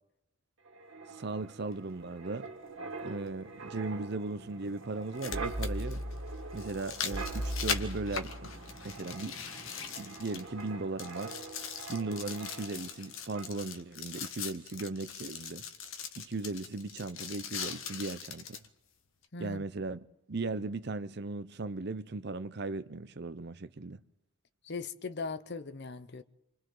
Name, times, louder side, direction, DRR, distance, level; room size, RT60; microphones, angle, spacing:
Wind, 0.6-13.0 13.3-13.6, right 1 dB, 65° right, 2.0 m, -41 dB
voice 1, 1.1-2.5 3.0-6.0 6.5-8.5 8.8-9.4 10.0-11.3 11.9-15.6 16.2-18.6 19.4-20.0 20.3-24.0, right 3 dB, 50° right, 0.7 m, -37 dB
sound 1, 1.7-1.8 3.7-3.8 5.0-10.7 11.0-18.7 19.2-19.3, left 7 dB, 70° left, 1.4 m, -41 dB
voice 2, 19.3-19.6 24.6-26.2, left 4 dB, 50° left, 0.8 m, -39 dB
28.5 x 24.5 x 3.9 m
head